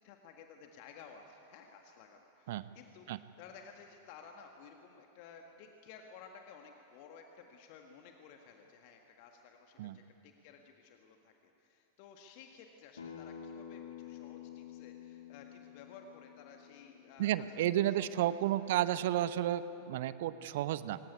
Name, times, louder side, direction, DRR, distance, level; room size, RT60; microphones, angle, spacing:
voice 1, 0.0-3.1 3.4-11.3 11.6-18.1 18.4-18.7, left 6 dB, 45° left, 3 dB, 1.7 m, -55 dB
Acoustic guitar, 13.0-18.2, left 8 dB, 70° left, 2.8 m, -50 dB
voice 2, 17.2-21.0, right 12 dB, 55° right, 14 dB, 0.8 m, -32 dB
23.5 x 18.0 x 9.8 m, 2.8 s
figure-of-eight pair, 90°, 0 cm